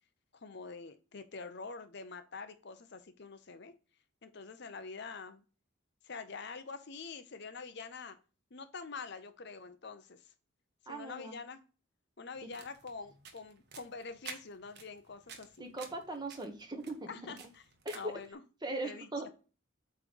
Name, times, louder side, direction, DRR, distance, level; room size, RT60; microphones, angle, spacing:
voice 1, 0.3-3.7 4.2-5.4 6.0-8.2 8.5-10.3 10.9-11.6 12.2-15.5 17.1-17.7 17.9-18.4 18.8-19.1, left 4 dB, 55° left, 9 dB, 0.7 m, -46 dB
voice 2, 10.9-11.3 15.6-17.3 17.8-18.1 18.6-19.3, right 2 dB, 20° right, 4 dB, 1.3 m, -39 dB
sound 1, 12.3-18.3, right 6 dB, 55° right, 1.3 m, -52 dB
8.3 x 3.3 x 5.2 m, 0.35 s
head